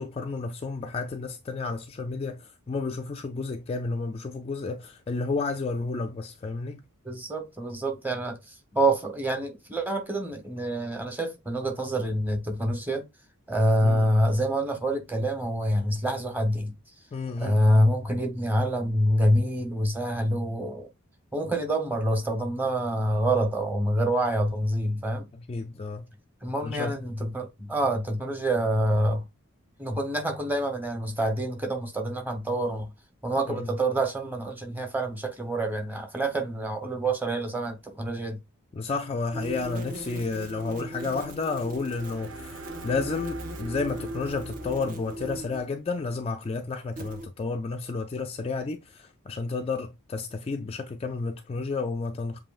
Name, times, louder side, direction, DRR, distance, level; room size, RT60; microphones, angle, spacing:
voice 1, 0.0-6.8 13.8-14.1 17.1-17.7 25.3-26.0 26.6-27.0 33.5-33.7 38.7-52.4, left 4 dB, 25° left, 0.3 m, -31 dB
voice 2, 7.0-13.0 13.5-16.7 17.4-20.9 21.3-25.3 26.4-29.2 29.8-32.9 33.2-38.4, right 1 dB, 10° right, 0.9 m, -26 dB
sound 1, 39.3-45.7 47.0-47.3, right 1 dB, 40° right, 0.8 m, -39 dB
sound 2, 41.8-45.5, right 1 dB, 65° right, 0.9 m, -43 dB
7.5 x 2.7 x 2.4 m
head